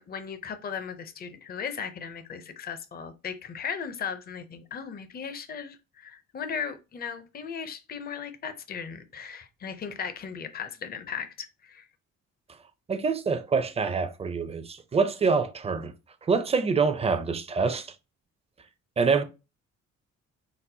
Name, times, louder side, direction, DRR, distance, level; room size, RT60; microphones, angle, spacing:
voice 1, 0.0-11.9, left 7 dB, 30° left, 0.5 m, -37 dB
voice 2, 12.9-15.9 16.3-17.9 19.0-19.2, right 5 dB, 20° right, 0.4 m, -25 dB
4.0 x 2.0 x 2.7 m
cardioid pair, 90°, 30 cm